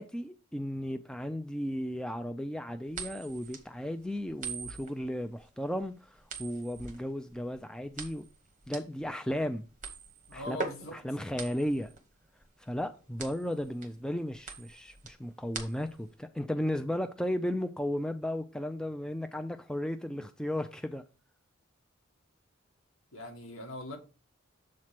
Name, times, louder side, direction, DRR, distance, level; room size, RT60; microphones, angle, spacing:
voice 1, 0.0-8.2 8.7-9.6 10.3-10.6 10.9-11.9 12.6-21.0, equal, 5° left, 0.3 m, -35 dB
sound 1, 2.9-16.1, right 4 dB, 40° right, 1.1 m, -43 dB
voice 2, 10.3-11.0 23.1-24.0, left 1 dB, 75° left, 1.7 m, -41 dB
7.4 x 3.1 x 5.8 m
head